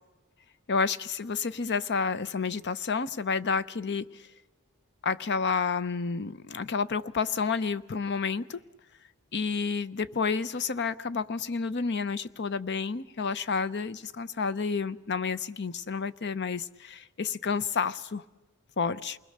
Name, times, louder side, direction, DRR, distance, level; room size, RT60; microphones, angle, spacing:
voice 1, 0.7-4.3 5.0-8.6 9.3-18.2 18.8-19.2, left 5 dB, 50° left, 0.7 m, -30 dB
28.0 x 20.5 x 6.6 m
head